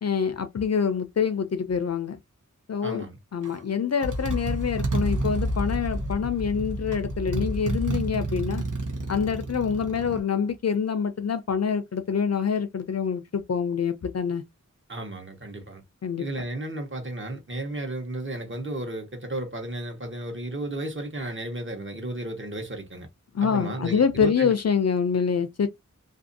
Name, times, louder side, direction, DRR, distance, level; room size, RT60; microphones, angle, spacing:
voice 1, 0.0-2.2 2.7-3.1 3.3-8.6 9.1-14.4 16.0-16.3 23.3-25.7, left 6 dB, 55° left, 0.5 m, -26 dB
voice 2, 2.8-3.2 14.9-15.8 16.2-23.1 23.4-24.5, right 1 dB, 40° right, 0.9 m, -34 dB
Motorcycle, 3.4-3.6 4.0-10.2, right 1 dB, 90° right, 0.8 m, -30 dB
2.6 x 2.5 x 2.6 m
wide cardioid pair, 60°, 30 cm